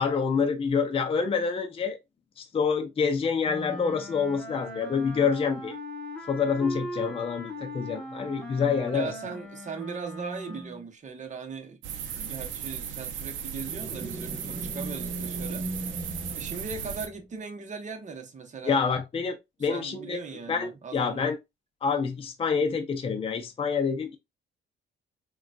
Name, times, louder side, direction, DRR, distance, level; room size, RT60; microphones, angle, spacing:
voice 1, 0.0-2.0 2.4-5.7 6.3-9.1 18.6-20.2 20.5-21.4 21.8-24.2, left 5 dB, 30° left, 0.5 m, -27 dB
Wind instrument woodwind instrument, 3.4-10.9, equal, 5° left, 1.2 m, -39 dB
voice 2, 8.9-11.8 12.2-15.7 16.3-18.8 19.7-21.2, right 5 dB, 40° right, 0.9 m, -39 dB
sound 1, 11.8-17.1, right 8 dB, 75° right, 0.6 m, -36 dB
sound 2, 13.7-17.3, right 2 dB, 15° right, 1.0 m, -38 dB
3.7 x 2.3 x 2.3 m
cardioid pair, 90°, 20 cm